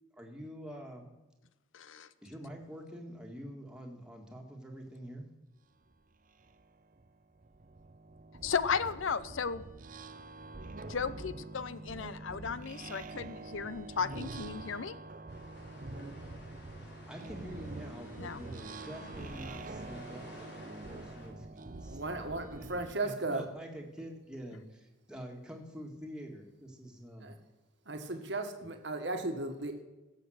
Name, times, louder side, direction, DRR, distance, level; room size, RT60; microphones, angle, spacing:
voice 1, 0.2-1.1 2.2-5.3 16.8-21.5 21.8-22.0 22.6-22.7 23.0-27.3 28.0-28.1, equal, 5° right, 1 dB, 1.8 m, -46 dB
voice 2, 1.7-2.1 8.4-9.6 10.9-14.9 18.2-18.4, left 6 dB, 75° left, 16 dB, 0.6 m, -35 dB
sound 1, 5.9-6.0 6.4-22.9, right 2 dB, 40° right, 0.6 m, -46 dB
sound 2, 15.3-21.3, left 1 dB, 55° left, 3.7 m, -52 dB
voice 3, 21.8-23.4 27.2-27.4 27.8-29.8, right 2 dB, 60° right, 5 dB, 1.5 m, -36 dB
16.5 x 7.1 x 6.4 m, 1.1 s
head